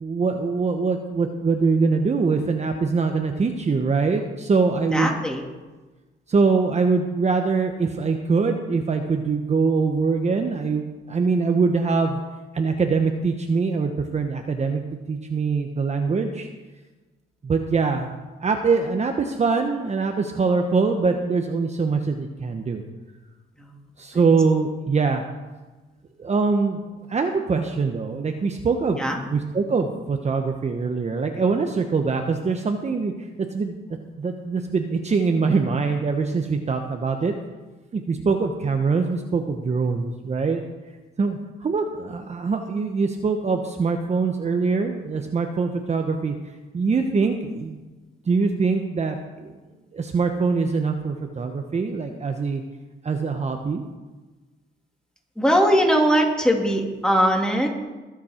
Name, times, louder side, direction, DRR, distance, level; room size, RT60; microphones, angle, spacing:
voice 1, 0.0-5.1 6.3-12.2 12.5-14.8 15.1-16.5 17.4-18.1 18.4-22.8 24.0-25.2 26.2-26.8 27.1-29.0 29.3-33.1 33.5-33.8 34.2-37.3 37.9-40.7 41.2-46.3 46.7-47.8 48.3-49.2 49.4-49.5 49.9-52.6 53.0-53.8, right 4 dB, 35° right, 4 dB, 1.1 m, -23 dB
voice 2, 4.9-5.4 23.6-23.7 24.1-24.2 29.0-29.2 55.4-57.7, equal, 5° left, 0 dB, 2.7 m, -20 dB
21.5 x 7.4 x 4.4 m, 1.2 s
cardioid pair, 90°, 20 cm